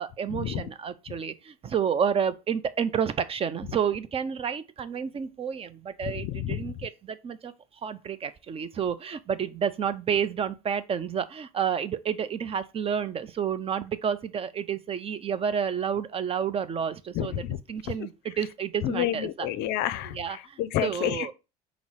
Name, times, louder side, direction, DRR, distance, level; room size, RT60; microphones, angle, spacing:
voice 1, 0.0-7.5 7.8-19.5 20.0-21.3, right 7 dB, 30° right, 0.4 m, -30 dB
voice 2, 6.2-6.7 17.2-17.6 18.8-20.2 20.6-21.3, left 12 dB, 60° left, 0.5 m, -29 dB
5.3 x 2.0 x 4.5 m
hypercardioid pair, 85°, 19 cm